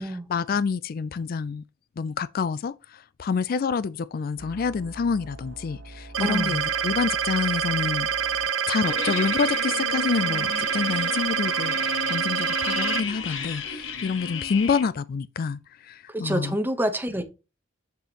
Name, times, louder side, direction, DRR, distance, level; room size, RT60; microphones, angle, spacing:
voice 1, 0.0-1.6 2.0-8.1 8.7-11.8 12.1-16.6, left 5 dB, 50° left, 0.4 m, -28 dB
sound 1, 4.4-8.5, right 1 dB, 65° right, 1.2 m, -44 dB
sound 2, 6.1-13.0, right 7 dB, 85° right, 0.8 m, -26 dB
voice 2, 6.2-6.6 16.1-17.2, right 1 dB, 10° right, 0.9 m, -27 dB
sound 3, 8.8-14.8, left 6 dB, 75° left, 1.4 m, -34 dB
6.9 x 6.6 x 2.9 m
head